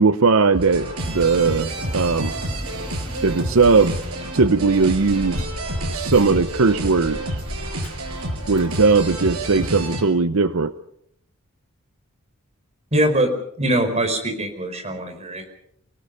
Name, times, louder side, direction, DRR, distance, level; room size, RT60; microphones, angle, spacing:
voice 1, 0.0-2.3 3.2-4.0 4.3-5.5 5.9-7.4 8.5-10.7, right 4 dB, 70° right, 12 dB, 0.7 m, -18 dB
sound 1, 0.5-10.0, right 1 dB, 90° right, 6.4 m, -29 dB
sound 2, 1.0-4.7, equal, 15° left, 1.9 m, -36 dB
Child speech kid speaking, 4.7-10.0, left 1 dB, 70° left, 2.0 m, -37 dB
voice 2, 12.9-13.3 13.6-15.5, right 1 dB, 30° right, 5 dB, 4.9 m, -22 dB
29.0 x 18.5 x 5.3 m, 0.71 s
head